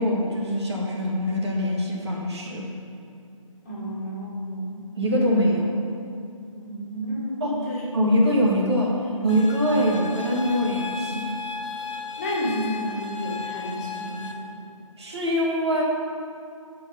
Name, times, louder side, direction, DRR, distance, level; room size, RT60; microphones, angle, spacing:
voice 1, 0.0-2.7 5.0-5.7 7.4-7.6 7.9-11.3 15.0-15.8, equal, 50° right, -2 dB, 1.7 m, -23 dB
voice 2, 3.7-4.7 6.5-7.9 12.2-14.6, equal, 30° left, -6 dB, 2.0 m, -31 dB
sound 1, 9.3-14.3, left 4 dB, 60° left, 1.1 m, -35 dB
12.0 x 4.8 x 5.5 m, 2.6 s
figure-of-eight pair, 165°, 17 cm